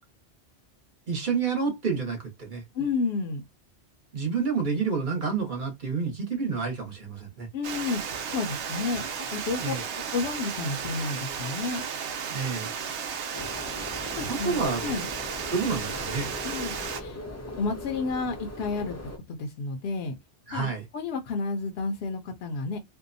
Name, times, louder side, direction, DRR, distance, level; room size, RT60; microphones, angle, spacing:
voice 1, 1.1-2.6 4.1-7.5 9.6-9.8 12.3-12.7 14.3-14.8 15.5-16.3 20.5-20.8, right 5 dB, 45° right, 1.0 m, -29 dB
voice 2, 2.7-3.4 7.5-8.0 8.3-11.8 14.2-15.1 16.4-17.2 17.6-19.0 19.3-20.1 20.5-22.8, left 4 dB, 70° left, 0.7 m, -31 dB
Water, 7.6-17.0, right 7 dB, 80° right, 0.9 m, -34 dB
sound 1, 13.3-19.2, left 2 dB, 20° left, 0.4 m, -39 dB
2.6 x 2.1 x 2.5 m
omnidirectional pair, 1.2 m